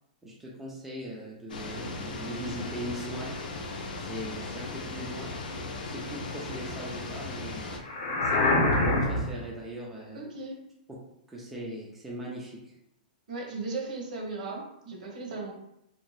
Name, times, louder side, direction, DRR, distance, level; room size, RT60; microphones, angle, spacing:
voice 1, 0.2-3.4 4.1-7.6 8.2-10.2 11.3-12.7, equal, 5° right, -5 dB, 0.3 m, -39 dB
sound 1, 1.5-7.8, left 3 dB, 90° left, 0.5 m, -37 dB
sound 2, 7.8-9.4, left 2 dB, 40° left, 0.7 m, -25 dB
voice 2, 10.1-10.6 13.3-15.5, right 3 dB, 65° right, 0 dB, 0.9 m, -36 dB
2.6 x 2.1 x 3.1 m, 0.82 s
hypercardioid pair, 170°, 5 cm